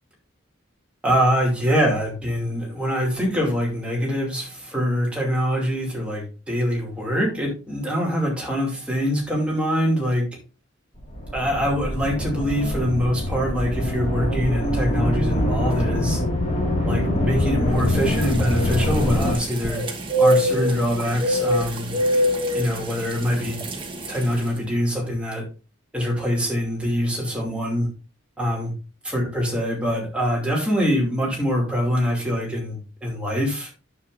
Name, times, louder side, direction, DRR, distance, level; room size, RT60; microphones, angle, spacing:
voice 1, 1.0-10.3 11.3-16.2 16.8-19.8 20.2-21.9 22.5-23.6 24.1-25.5 25.9-27.9 28.4-28.7 29.0-33.7, equal, 5° right, -2 dB, 2.4 m, -24 dB
sound 1, 10.9-19.3, left 1 dB, 35° left, 2.0 m, -24 dB
sound 2, 17.9-24.5, equal, 25° right, 1.2 m, -25 dB
9.5 x 7.2 x 2.5 m, 0.33 s
head